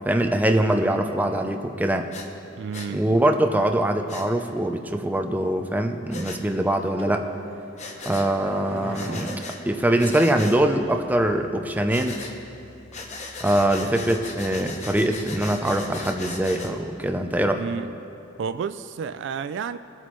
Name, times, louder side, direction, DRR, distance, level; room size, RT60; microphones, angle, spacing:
voice 1, 0.1-2.1 2.9-7.2 8.1-12.2 13.4-17.6, right 1 dB, 10° right, 5 dB, 0.5 m, -23 dB
Breathing, 2.1-2.3 2.7-2.9 4.1-4.3 6.1-6.4 7.8-8.3 8.9-9.6 10.0-10.6 11.9-12.3 12.9-16.7, left 3 dB, 35° left, 0.9 m, -37 dB
voice 2, 2.6-3.0 17.6-17.9 18.4-19.8, right 6 dB, 65° right, 12 dB, 0.3 m, -30 dB
sound 1, 7.0-10.7 11.0-11.1, right 1 dB, 80° right, 1.4 m, -39 dB
sound 2, 10.6-17.4, left 1 dB, 85° left, 1.5 m, -52 dB
20.0 x 8.4 x 3.1 m, 2.8 s
head